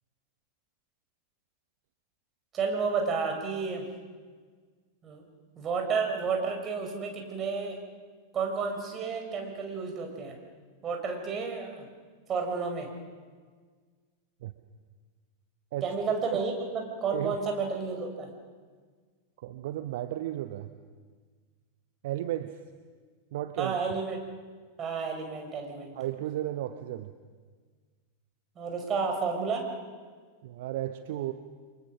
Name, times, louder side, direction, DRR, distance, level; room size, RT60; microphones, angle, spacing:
voice 1, 2.5-3.9 5.0-5.2 5.6-7.8 8.3-10.4 10.8-11.9 12.3-12.9 15.8-18.3 23.6-24.2 24.8-25.9 28.5-29.7, right 5 dB, 25° right, 2 dB, 4.9 m, -31 dB
voice 2, 19.4-20.7 22.0-22.5 23.3-23.7 25.9-27.1 30.4-31.3, right 13 dB, 55° right, 10 dB, 0.9 m, -34 dB
30.0 x 23.5 x 6.3 m, 1.5 s
figure-of-eight pair, 90°, 0 cm